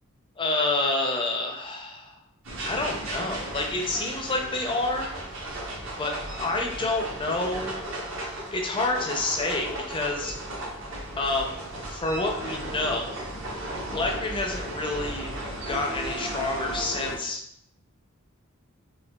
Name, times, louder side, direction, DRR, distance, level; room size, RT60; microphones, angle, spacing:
voice 1, 0.4-2.2 2.6-5.1 6.0-7.8 8.5-10.3 11.2-13.2 13.9-15.3 15.7-17.4, left 2 dB, 25° left, 2 dB, 0.5 m, -28 dB
sound 1, 2.4-17.2, right 1 dB, 60° right, 0.9 m, -35 dB
4.9 x 2.3 x 2.3 m, 0.76 s
head